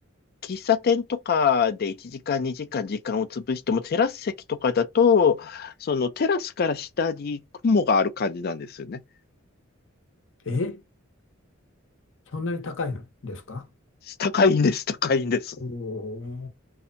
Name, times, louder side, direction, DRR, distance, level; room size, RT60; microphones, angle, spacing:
voice 1, 0.4-9.0 14.1-15.6, left 5 dB, 50° left, 0.4 m, -24 dB
voice 2, 10.5-10.8 12.3-13.7 15.6-16.5, left 3 dB, 65° left, 0.8 m, -31 dB
2.7 x 2.1 x 2.5 m
head